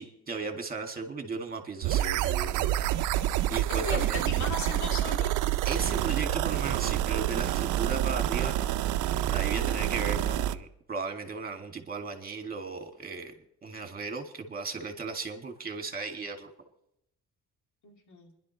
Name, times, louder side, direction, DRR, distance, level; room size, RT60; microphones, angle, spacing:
voice 1, 0.0-2.8 3.5-4.2 5.6-8.7 9.0-13.3 13.6-16.5, right 4 dB, 30° right, 5 dB, 2.1 m, -36 dB
sound 1, 1.8-10.6, right 13 dB, 90° right, 0.5 m, -28 dB
voice 2, 3.7-5.4 17.8-18.3, left 4 dB, 70° left, 3 dB, 2.5 m, -37 dB
28.5 x 11.0 x 3.2 m, 0.80 s
cardioid pair, 90°, 30 cm